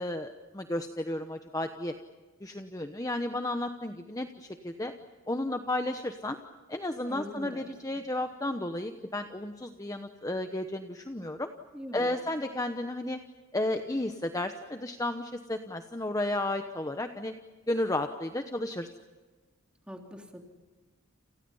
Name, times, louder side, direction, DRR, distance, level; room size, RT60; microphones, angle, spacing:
voice 1, 0.0-1.9 2.4-4.9 5.3-6.4 6.7-11.5 11.9-13.2 13.5-17.3 17.7-18.9, left 1 dB, 15° left, 7 dB, 1.0 m, -33 dB
voice 2, 7.1-7.6 11.7-12.2 19.9-20.4, equal, 5° right, 2 dB, 3.3 m, -42 dB
29.5 x 29.5 x 5.6 m, 1.3 s
head